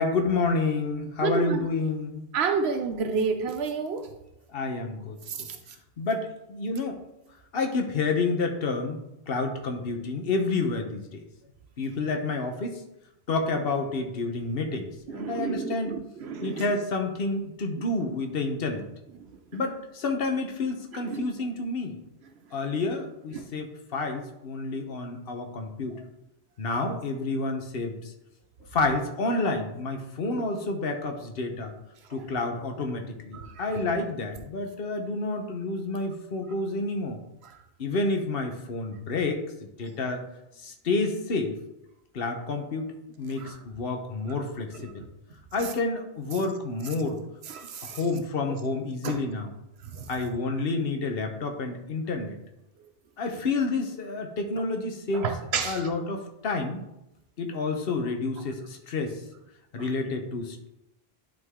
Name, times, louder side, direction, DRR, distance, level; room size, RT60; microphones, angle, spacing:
voice 1, 0.0-2.2 4.5-5.5 6.0-7.0 7.5-9.0 9.3-11.2 11.8-12.8 13.3-16.0 16.4-18.8 19.5-22.0 22.5-26.0 26.6-27.9 28.7-31.7 32.1-37.2 37.8-40.2 40.6-41.5 42.1-42.9 43.2-45.0 45.5-47.2 47.8-49.5 50.1-52.4 53.2-55.3 55.6-56.8 57.4-59.2 59.7-60.7, left 3 dB, 65° left, 4 dB, 1.2 m, -29 dB
voice 2, 1.2-1.6 2.3-4.1 5.3-5.6 15.1-16.7 20.9-21.2 23.3-23.5 33.3-33.7 37.4-37.6 43.4-43.6 44.7-44.8 45.6-45.7 47.5-48.0 49.0-49.2 49.9-50.1 55.1-55.8 59.8-59.9, right 5 dB, 85° right, 6 dB, 0.9 m, -30 dB
11.0 x 3.9 x 3.6 m, 0.86 s
omnidirectional pair, 1.1 m